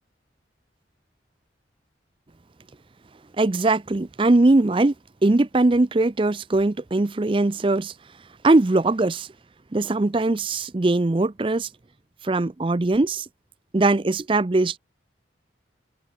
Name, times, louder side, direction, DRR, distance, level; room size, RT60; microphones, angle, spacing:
voice 1, 3.4-4.9 5.2-7.9 8.4-9.3 9.7-11.7 12.2-13.2 13.7-14.8, right 2 dB, 30° right, 0.5 m, -20 dB
open air
head